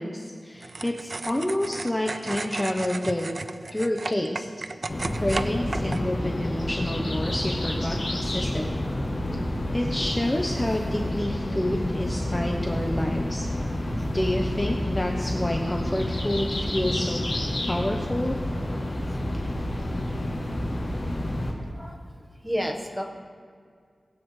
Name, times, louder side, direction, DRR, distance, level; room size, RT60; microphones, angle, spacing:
voice 1, 0.0-3.3 3.7-4.5 5.2-8.7 9.3-9.4 9.7-13.5 14.1-17.4 17.7-18.4, left 1 dB, 15° left, 1 dB, 0.9 m, -28 dB
sound 1, 0.6-6.0, right 3 dB, 50° right, 0.4 m, -35 dB
sound 2, 4.9-21.5, left 1 dB, 55° left, 3.1 m, -29 dB
voice 2, 22.4-23.0, equal, ahead, 1 dB, 1.3 m, -31 dB
21.0 x 8.6 x 3.2 m, 2.1 s
wide cardioid pair, 100°, 0 cm